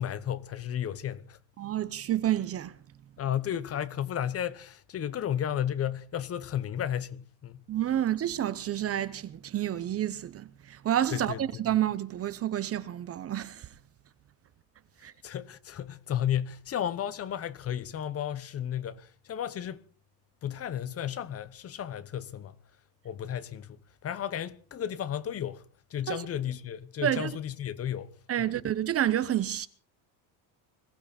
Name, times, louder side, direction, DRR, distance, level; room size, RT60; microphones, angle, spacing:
voice 1, 0.0-1.4 3.2-7.6 11.1-11.6 15.2-19.8 20.4-22.5 23.0-23.8 24.0-25.6 25.9-28.1 28.4-28.5, left 10 dB, 30° left, 0.9 m, -33 dB
voice 2, 1.6-2.7 7.7-13.7 15.0-15.1 26.1-26.2 27.0-27.3 28.3-29.7, right 11 dB, 30° right, 0.8 m, -29 dB
21.5 x 15.0 x 4.2 m
cardioid pair, 130°, 45 cm